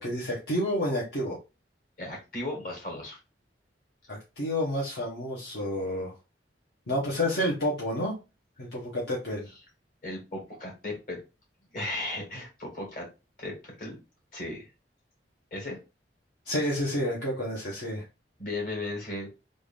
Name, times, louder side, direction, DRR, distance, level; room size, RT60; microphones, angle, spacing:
voice 1, 0.0-1.4 4.1-6.1 6.9-8.2 8.6-9.5 16.5-18.0, left 1 dB, 70° left, -5 dB, 1.1 m, -29 dB
voice 2, 2.0-3.2 10.0-11.2 11.7-13.1 13.4-14.0 14.3-14.7 15.5-15.8 18.4-19.3, left 2 dB, 55° left, -1 dB, 1.8 m, -36 dB
3.5 x 2.6 x 3.4 m, 0.28 s
head